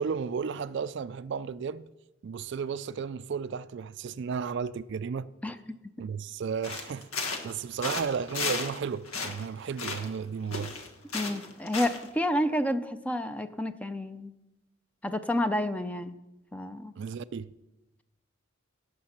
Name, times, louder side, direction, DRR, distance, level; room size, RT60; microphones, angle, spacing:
voice 1, 0.0-1.9 2.2-5.3 6.0-10.8 17.0-17.5, right 6 dB, 55° right, 0.3 m, -34 dB
sound 1, 6.6-8.8 9.1-10.2 10.5-12.1, left 4 dB, 85° left, 1.5 m, -34 dB
voice 2, 11.1-14.3 15.0-16.2 16.5-16.9, left 1 dB, 5° left, 0.5 m, -30 dB
17.5 x 6.9 x 5.8 m
head